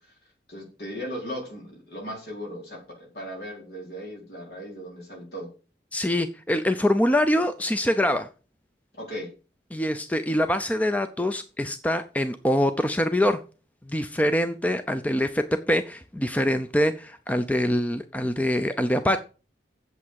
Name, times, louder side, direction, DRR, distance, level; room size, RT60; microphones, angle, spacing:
voice 1, 0.5-5.5 9.0-9.3, equal, 65° left, -1 dB, 4.4 m, -37 dB
voice 2, 5.9-8.3 9.7-13.4 13.9-19.2, left 1 dB, 10° left, 9 dB, 0.5 m, -24 dB
8.4 x 7.4 x 6.3 m, 0.35 s
head